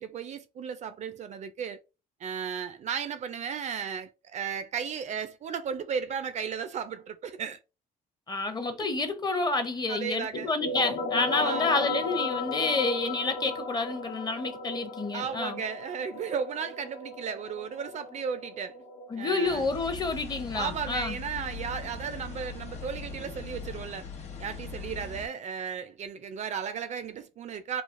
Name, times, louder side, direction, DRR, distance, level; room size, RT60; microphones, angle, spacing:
voice 1, 0.0-1.8 2.2-7.6 8.8-8.9 9.9-10.5 11.4-11.8 15.1-18.8 19.2-19.7 20.5-24.1 24.4-27.8, right 7 dB, 45° right, 0.4 m, -35 dB
voice 2, 8.3-15.6 19.1-21.2, left 3 dB, 25° left, 0.6 m, -29 dB
sound 1, 10.3-19.7, left 3 dB, 70° left, 1.0 m, -36 dB
sound 2, 19.4-25.3, left 4 dB, 40° left, 0.9 m, -40 dB
3.1 x 2.3 x 2.5 m
cardioid pair, 110°, 17 cm